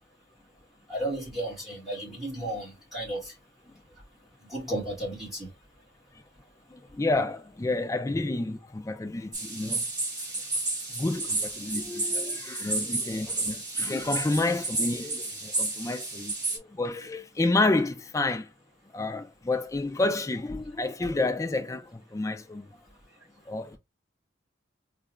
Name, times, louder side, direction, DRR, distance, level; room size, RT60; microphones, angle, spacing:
voice 1, 0.9-3.3 4.5-5.5, right 1 dB, ahead, 2.3 m, -33 dB
voice 2, 6.7-9.9 10.9-18.5 18.9-22.7 23.5-23.8, left 2 dB, 15° left, 0.3 m, -29 dB
sound 1, 9.3-16.6, right 2 dB, 20° right, 1.9 m, -31 dB
3.7 x 2.5 x 3.2 m
head